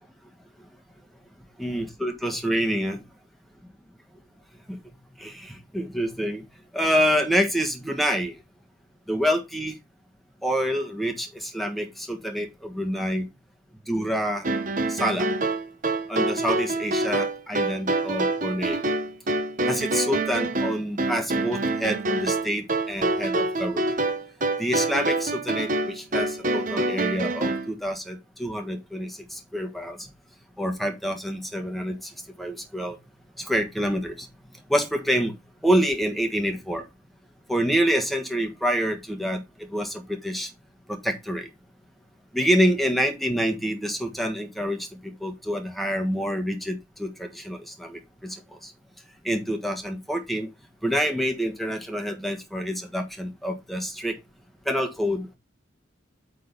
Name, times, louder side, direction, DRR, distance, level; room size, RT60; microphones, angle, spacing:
voice 1, 1.6-3.0 4.7-4.8 5.2-6.4 6.7-8.3 9.1-9.8 10.4-13.3 13.9-14.4 14.9-15.3 16.1-18.8 19.7-23.9 24.6-30.0 30.6-32.1 32.4-33.0 33.4-34.3 34.7-35.3 35.6-36.8 37.5-39.4 39.7-40.5 40.9-41.5 42.3-48.4 48.6-48.7 49.2-50.5 50.8-54.2 54.6-55.4, equal, ahead, 4 dB, 1.4 m, -27 dB
sound 1, 14.4-27.7, right 2 dB, 40° right, 1.1 m, -26 dB
8.6 x 3.8 x 5.3 m, 0.23 s
head